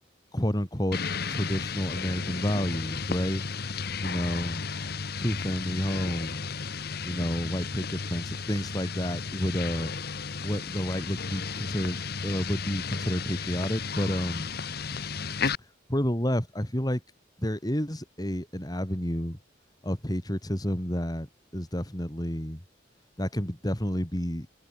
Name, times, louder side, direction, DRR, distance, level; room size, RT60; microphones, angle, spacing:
voice 1, 0.3-1.0 1.3-3.4 4.0-4.6 5.2-6.5 7.0-9.9 10.4-14.6 15.9-17.0 17.4-19.4 19.8-21.3 21.5-22.6 23.2-24.7, equal, 20° left, 3.1 m, -30 dB
sound 1, 0.9-15.5, left 5 dB, 55° left, 1.1 m, -34 dB
head